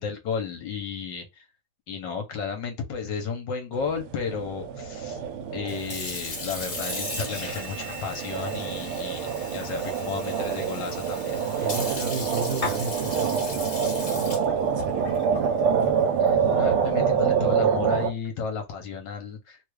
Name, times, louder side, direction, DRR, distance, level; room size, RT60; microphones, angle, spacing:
voice 1, 0.0-1.5 1.9-5.2 5.5-9.3 9.5-11.4 16.2-19.6, left 5 dB, 65° left, 1.3 m, -33 dB
sound 1, 3.7-18.1, right 7 dB, 90° right, 1.5 m, -27 dB
Sink (filling or washing) / Fill (with liquid), 5.5-17.1, left 3 dB, 25° left, 0.8 m, -37 dB
sound 2, 6.9-11.7, right 12 dB, 55° right, 1.0 m, -47 dB
voice 2, 11.6-13.7 14.1-15.9, right 4 dB, 70° right, 1.3 m, -35 dB
3.4 x 2.3 x 3.1 m
omnidirectional pair, 2.3 m